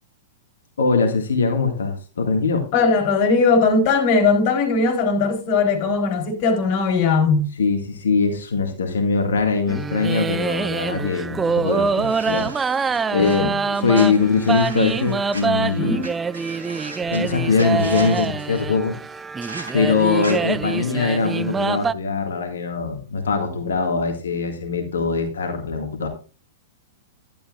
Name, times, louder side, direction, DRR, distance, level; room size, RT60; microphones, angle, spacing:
voice 1, 0.8-2.7 7.6-12.5 13.1-16.0 17.1-19.0 19.7-26.1, left 4 dB, 70° left, 1.9 m, -22 dB
voice 2, 2.7-7.5 13.2-13.5 15.8-16.1, left 4 dB, 45° left, 3.8 m, -19 dB
sound 1, 9.7-21.9, right 5 dB, 15° right, 0.4 m, -25 dB
sound 2, 12.0-13.4 13.9-15.4 16.0-16.1 16.3-17.2 17.6-18.3 19.4-19.7 20.2-20.3, right 2 dB, 80° right, 3.2 m, -37 dB
11.5 x 11.0 x 2.4 m
figure-of-eight pair, 105°, 0 cm